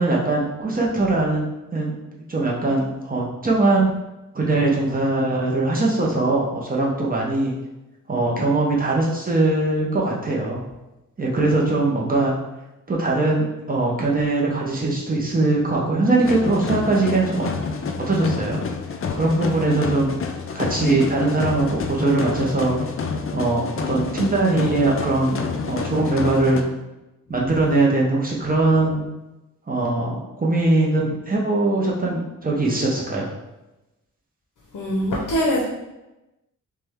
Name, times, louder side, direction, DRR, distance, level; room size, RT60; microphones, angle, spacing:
voice 1, 0.0-1.4 1.7-3.9 4.3-7.5 8.1-10.6 11.2-12.3 12.9-17.5 18.0-18.6 19.1-20.1 20.5-22.8 23.3-25.4 25.7-26.6 27.3-29.0 29.7-33.3, right 2 dB, 25° right, -3 dB, 0.7 m, -21 dB
sound 1, 16.2-26.6, left 5 dB, 40° left, 0.4 m, -28 dB
voice 2, 34.7-35.6, equal, 65° left, -3 dB, 0.7 m, -23 dB
3.2 x 3.2 x 3.5 m, 0.99 s
wide cardioid pair, 130°, 33 cm